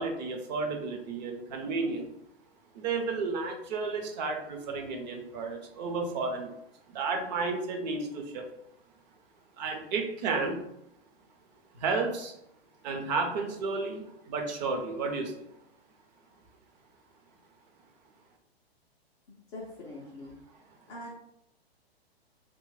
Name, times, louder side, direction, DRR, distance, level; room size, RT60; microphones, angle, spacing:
voice 1, 0.0-2.1 2.7-6.5 6.9-8.5 9.6-10.6 11.7-12.3 12.8-15.4, right 4 dB, 45° right, 4 dB, 0.6 m, -32 dB
voice 2, 19.5-20.4 20.9-21.1, left 1 dB, 15° left, -4 dB, 0.3 m, -42 dB
3.0 x 2.2 x 3.3 m, 0.78 s
hypercardioid pair, 125°, 31 cm